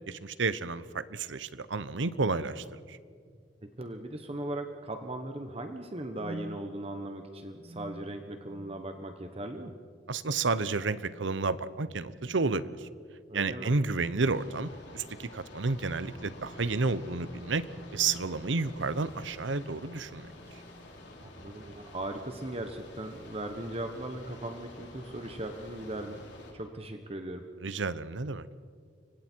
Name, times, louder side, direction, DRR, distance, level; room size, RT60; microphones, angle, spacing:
voice 1, 0.1-3.0 10.1-12.9 13.3-17.6 17.9-20.3 27.6-28.5, right 3 dB, 85° right, 15 dB, 0.9 m, -31 dB
sound 1, 3.3-3.4 4.0-4.5 6.1-6.6 7.6-8.8 9.2-9.5 10.1-10.6 10.9-11.2 12.2-12.7 13.9-14.4 14.8-15.0 15.8-18.4 19.3-19.5 20.0-21.0, right 1 dB, 55° right, 2.8 m, -50 dB
voice 2, 3.8-9.7 13.3-13.7 21.2-26.2 26.5-27.5, right 1 dB, 35° right, 6 dB, 1.3 m, -38 dB
sound 2, 14.2-26.5, left 1 dB, 75° left, 5.7 m, -49 dB
30.0 x 25.0 x 4.6 m, 2.1 s
head